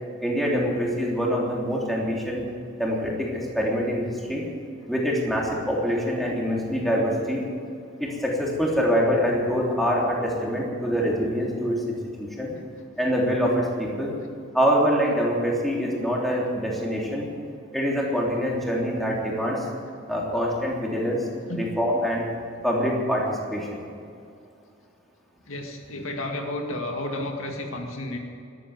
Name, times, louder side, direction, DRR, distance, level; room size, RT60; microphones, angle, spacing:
voice 1, 0.2-2.4 2.8-4.4 4.9-7.4 8.0-12.5 13.0-14.1 14.5-17.3 17.7-19.6 20.1-21.3 21.5-22.3 22.6-23.8, equal, ahead, -3 dB, 3.2 m, -25 dB
voice 2, 25.5-28.2, left 1 dB, 75° left, 2 dB, 2.2 m, -32 dB
14.0 x 12.5 x 7.9 m, 2.5 s
head